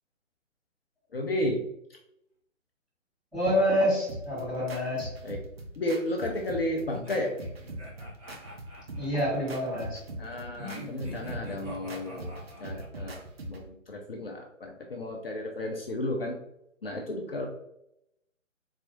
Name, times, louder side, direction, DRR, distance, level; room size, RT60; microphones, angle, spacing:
voice 1, 1.1-1.6 1.9-2.0 5.2-5.4 5.8-7.4 10.2-12.3 12.6-13.2 13.5-16.4 16.8-17.5, left 1 dB, 50° left, 2 dB, 0.5 m, -32 dB
voice 2, 3.3-5.1 8.9-10.0, equal, ahead, -13 dB, 1.3 m, -27 dB
sound 1, 4.1-13.7, right 1 dB, 50° right, 0.7 m, -42 dB
sound 2, 6.9-9.6 10.5-13.1, left 1 dB, 30° right, 1.1 m, -44 dB
4.0 x 2.8 x 2.7 m, 0.79 s
figure-of-eight pair, 140°, 39 cm